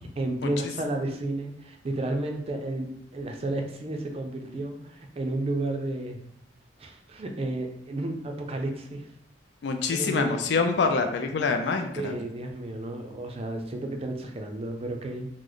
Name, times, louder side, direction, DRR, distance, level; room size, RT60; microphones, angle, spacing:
voice 1, 0.0-6.2 6.8-9.1 9.9-10.6 11.4-11.6 12.0-15.3, right 2 dB, 35° right, 4 dB, 0.4 m, -32 dB
voice 2, 9.6-12.2, left 4 dB, 70° left, 5 dB, 0.3 m, -26 dB
3.1 x 2.0 x 3.8 m, 0.72 s
head